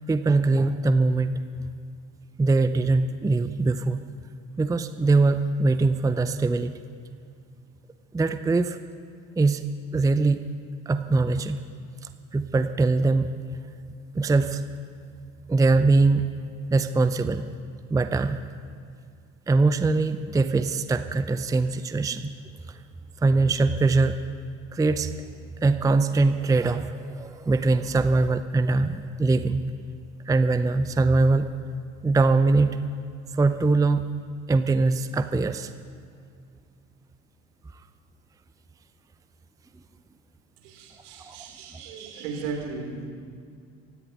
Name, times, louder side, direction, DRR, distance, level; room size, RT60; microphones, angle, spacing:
voice 1, 0.1-1.4 2.4-4.0 4.6-6.7 8.1-8.8 9.4-9.6 9.9-10.5 10.9-11.6 12.3-13.3 14.1-14.6 15.5-16.3 16.7-17.5 17.9-18.4 19.5-22.3 22.7-22.8 23.2-24.2 24.7-25.2 25.6-29.6 30.3-31.5 32.0-32.8 33.3-34.1 34.5-35.7 41.2-41.4, right 3 dB, 10° right, 10 dB, 0.6 m, -22 dB
voice 2, 40.6-43.1, right 5 dB, 70° right, 1 dB, 3.5 m, -36 dB
27.5 x 16.0 x 3.0 m, 2.2 s
figure-of-eight pair, 60°, 38 cm